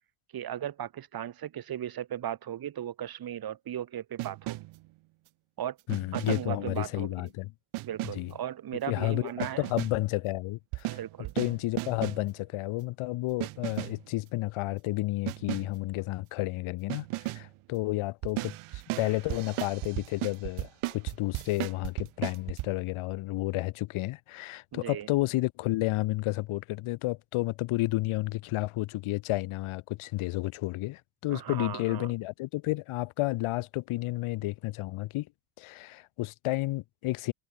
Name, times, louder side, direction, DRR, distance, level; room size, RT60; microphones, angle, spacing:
voice 1, 0.3-4.6 5.6-5.8 6.1-7.1 7.8-9.7 10.9-11.3 11.8-11.9 24.7-25.1 31.3-32.1, right 10 dB, 45° right, 1.6 m, -36 dB
sound 1, 4.2-4.9 5.9-6.7 7.7-8.3 9.4-10.1 10.7-12.3 13.4-14.1 15.3-15.8 16.9-17.5 18.2-22.7, right 20 dB, 80° right, 0.7 m, -35 dB
voice 2, 5.9-7.5 8.1-8.3 8.9-11.0 11.4-35.3 35.6-37.3, left 19 dB, 90° left, 0.9 m, -31 dB
cardioid pair, 145°, 48 cm